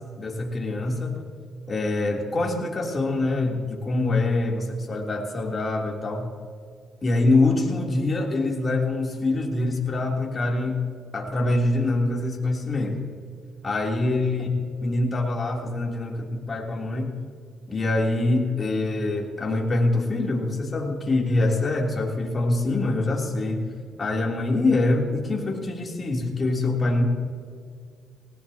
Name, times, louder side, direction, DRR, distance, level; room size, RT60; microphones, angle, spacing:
voice 1, 0.2-1.2 1.7-6.3 7.0-10.8 11.1-13.0 13.6-14.6 14.8-17.1 17.7-23.6 24.0-27.0, left 2 dB, 35° left, -1 dB, 3.2 m, -24 dB
18.5 x 18.5 x 2.9 m, 2.2 s
cardioid pair, 90°, 0 cm